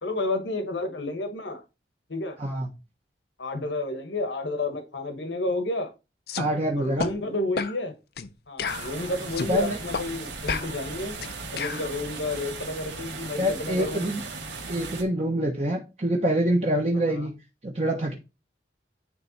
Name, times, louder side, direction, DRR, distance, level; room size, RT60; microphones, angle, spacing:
voice 1, 0.0-1.6 2.1-2.4 3.4-5.9 6.8-7.9 8.5-11.2 11.5-14.1 17.1-17.3, left 2 dB, 80° left, 1.3 m, -31 dB
sound 1, 6.3-6.5 7.0-7.1 7.6-7.8 8.2-8.3 8.6-9.5 9.9-10.1 10.5-11.9, left 5 dB, 60° left, 0.5 m, -31 dB
voice 2, 6.4-7.1 9.5-9.8 13.4-14.2 14.7-17.3 17.6-18.1, right 1 dB, 35° right, 1.1 m, -25 dB
sound 2, 8.6-15.0, right 3 dB, 80° right, 2.1 m, -37 dB
9.9 x 3.4 x 4.1 m
head